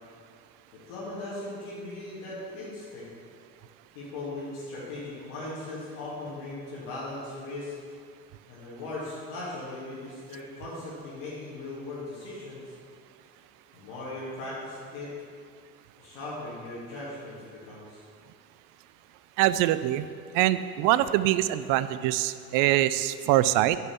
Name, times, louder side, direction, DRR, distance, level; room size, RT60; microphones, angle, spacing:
voice 1, 0.7-3.1 3.9-7.7 8.5-12.8 13.7-15.1 16.0-18.0, left 2 dB, 65° left, -9 dB, 2.5 m, -38 dB
voice 2, 19.4-20.1 20.3-23.8, right 14 dB, 50° right, 14 dB, 0.5 m, -24 dB
9.7 x 5.6 x 7.1 m, 2.2 s
hypercardioid pair, 65°, 41 cm